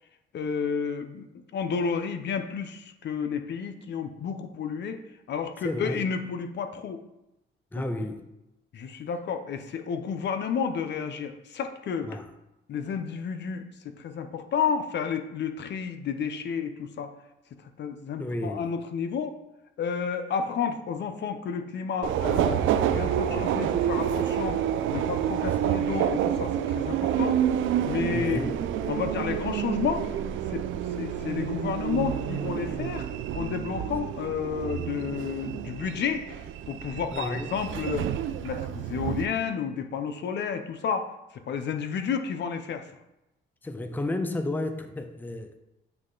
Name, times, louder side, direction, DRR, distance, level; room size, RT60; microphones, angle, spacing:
voice 1, 0.3-5.0 5.3-7.0 7.7-7.9 8.7-12.2 12.7-17.1 17.8-19.4 19.8-22.6 22.9-24.6 24.9-27.4 27.8-28.4 28.9-30.1 30.5-30.7 31.0-36.4 36.7-38.1 38.4-42.9, left 6 dB, 60° left, 0.6 m, -31 dB
voice 2, 5.6-6.1 7.7-8.3 12.1-12.3 18.2-18.7 28.1-28.6 37.1-37.5 43.6-45.6, left 1 dB, 10° left, 0.5 m, -32 dB
Subway metro underground, 22.0-39.3, right 10 dB, 80° right, 0.4 m, -28 dB
8.1 x 3.1 x 3.8 m
cardioid pair, 90°, 20 cm